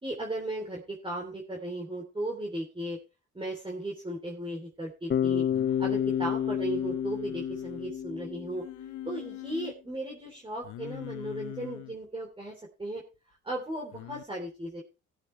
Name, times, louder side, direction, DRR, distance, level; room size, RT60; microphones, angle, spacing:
voice 1, 0.0-3.0 3.3-5.4 5.8-8.6 9.0-13.0 13.4-14.8, right 1 dB, 15° right, -1 dB, 3.2 m, -36 dB
Bass guitar, 5.1-9.2, left 9 dB, 35° left, 0.5 m, -30 dB
Singing, 5.5-7.9 8.6-9.7 10.6-12.0 13.9-14.2, left 14 dB, 80° left, 0.9 m, -43 dB
18.5 x 8.4 x 3.2 m, 0.29 s
cardioid pair, 90°, 30 cm